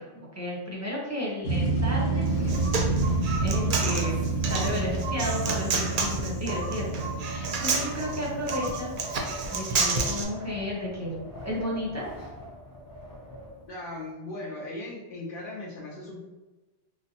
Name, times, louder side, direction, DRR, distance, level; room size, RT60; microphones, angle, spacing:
voice 1, 0.0-3.1 3.4-12.1, left 1 dB, 20° right, -4 dB, 0.6 m, -33 dB
sound 1, 1.4-10.1, right 3 dB, 85° left, 1.0 m, -29 dB
Wind, 1.4-14.0, equal, 35° left, 0.3 m, -44 dB
Human voice, 2.3-10.2, right 4 dB, 60° right, 0.6 m, -30 dB
voice 2, 13.7-16.2, left 2 dB, 60° left, -4 dB, 0.7 m, -38 dB
3.8 x 2.1 x 2.7 m, 1.1 s
omnidirectional pair, 1.1 m